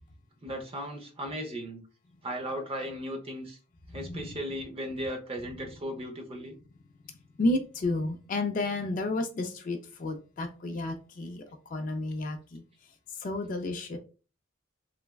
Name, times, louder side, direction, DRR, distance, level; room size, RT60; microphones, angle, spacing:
voice 1, 0.4-1.8 2.2-3.6 3.9-6.5 10.7-10.8, equal, 25° right, 2 dB, 0.6 m, -36 dB
voice 2, 7.4-11.4 11.7-12.6 13.2-14.0, left 2 dB, 40° left, 5 dB, 0.3 m, -31 dB
3.2 x 2.1 x 2.2 m, 0.35 s
head